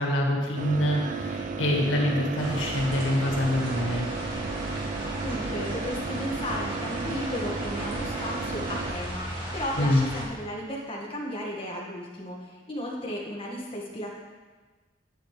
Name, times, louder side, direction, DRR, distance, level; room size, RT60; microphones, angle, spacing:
voice 1, 0.0-4.1 9.8-10.0, left 1 dB, 85° left, -1 dB, 2.0 m, -25 dB
sound 1, 0.6-8.9, right 4 dB, 40° right, 0.5 m, -34 dB
sound 2, 2.4-10.2, equal, 25° right, 2.3 m, -36 dB
voice 2, 5.2-14.1, equal, 30° left, -3 dB, 1.9 m, -35 dB
10.5 x 9.5 x 3.4 m, 1.3 s
head